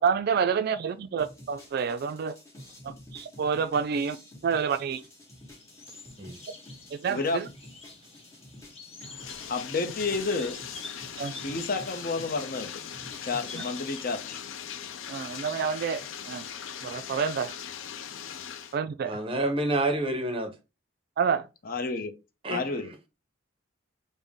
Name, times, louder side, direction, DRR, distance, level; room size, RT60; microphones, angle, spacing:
voice 1, 0.0-2.3 2.8-4.2 4.4-5.0 6.9-7.5 11.2-11.4 13.5-13.6 15.1-16.5 16.8-17.6 18.7-19.2 21.2-21.5, right 6 dB, 50° right, 0.3 m, -28 dB
sound 1, 1.2-13.7, left 1 dB, 15° left, 1.4 m, -50 dB
sound 2, 5.0-14.0, left 3 dB, 30° left, 1.0 m, -48 dB
voice 2, 7.1-7.4 9.5-10.6 11.4-12.7 13.2-14.4 21.7-22.1 22.5-22.9, left 3 dB, 45° left, 0.6 m, -30 dB
Bathtub (filling or washing), 9.0-18.8, left 8 dB, 85° left, 0.4 m, -40 dB
voice 3, 19.0-20.5 22.4-22.7, right 2 dB, 30° right, 0.7 m, -28 dB
5.4 x 2.1 x 3.5 m
head